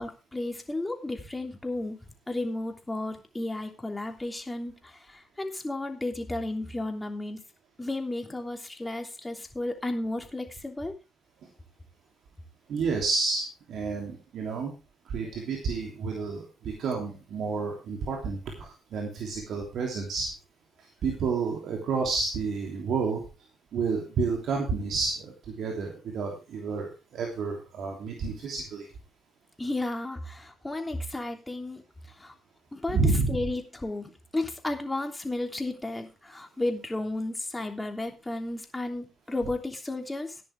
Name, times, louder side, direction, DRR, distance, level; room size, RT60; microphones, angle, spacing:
voice 1, 0.0-2.0 2.3-7.4 7.8-10.9 29.6-31.8 32.1-32.3 32.7-33.0 33.3-40.4, left 2 dB, 15° left, 3 dB, 3.1 m, -33 dB
voice 2, 12.7-14.7 15.1-20.3 21.0-23.2 23.7-28.9 32.9-33.4, right 4 dB, 65° right, 0 dB, 3.1 m, -30 dB
14.0 x 10.5 x 3.5 m, 0.30 s
hypercardioid pair, 50°, 0 cm